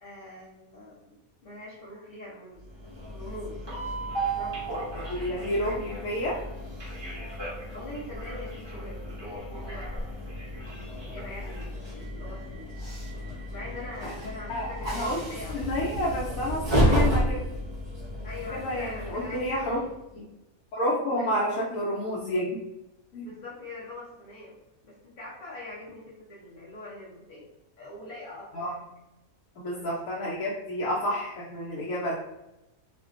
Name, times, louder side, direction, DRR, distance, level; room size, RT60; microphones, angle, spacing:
voice 1, 0.0-2.7 3.1-3.6 4.4-4.7 5.2-5.5 7.3-7.4 7.7-10.2 10.5-12.7 13.5-15.7 18.2-19.9 21.2-21.4 23.2-24.5 24.8-27.5 27.8-28.8 29.6-29.9 30.8-30.9, left 2 dB, 50° left, -7 dB, 0.6 m, -43 dB
Train, 2.7-19.9, right 1 dB, 45° right, 0.3 m, -32 dB
voice 2, 4.9-6.4 14.0-14.1 14.5-17.4 18.5-19.9 20.1-20.2 20.7-22.6 23.1-23.3 28.5-28.8 29.6-32.1, left 1 dB, 80° left, -5 dB, 1.0 m, -30 dB
2.5 x 2.2 x 2.4 m, 0.94 s
omnidirectional pair, 1.5 m